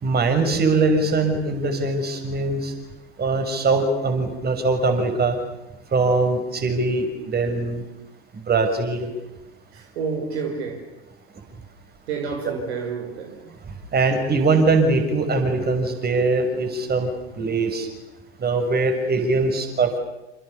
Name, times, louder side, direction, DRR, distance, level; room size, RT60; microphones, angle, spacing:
voice 1, 0.0-2.7 3.2-5.3 5.9-7.8 8.5-9.1 13.9-17.1 17.4-17.9 18.4-20.0, right 3 dB, 30° right, 6.3 m, -21 dB
voice 2, 9.7-10.9 12.1-13.6, right 5 dB, 65° right, 5.1 m, -30 dB
28.0 x 28.0 x 7.1 m
figure-of-eight pair, 75°, 34 cm